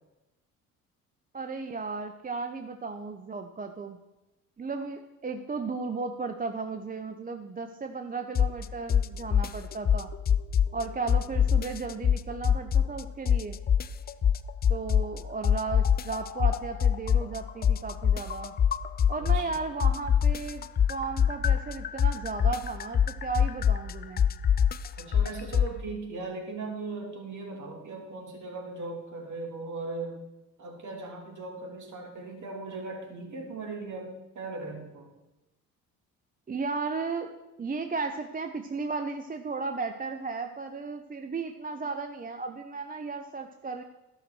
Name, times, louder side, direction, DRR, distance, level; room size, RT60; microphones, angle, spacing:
voice 1, 1.3-4.0 4.6-10.1 10.7-13.6 14.7-18.5 19.1-24.2 36.5-37.3 37.6-43.8, right 4 dB, 20° right, 6 dB, 0.8 m, -35 dB
sound 1, 8.3-8.6 8.9-10.8 11.1-13.0 13.3-15.2 15.4-19.5 19.8-25.7, left 8 dB, 25° left, 0.4 m, -24 dB
voice 2, 19.2-19.6 25.0-30.2 30.6-35.1, right 3 dB, 45° right, 0 dB, 3.1 m, -38 dB
13.0 x 5.8 x 6.2 m, 1.0 s
hypercardioid pair, 55°, 42 cm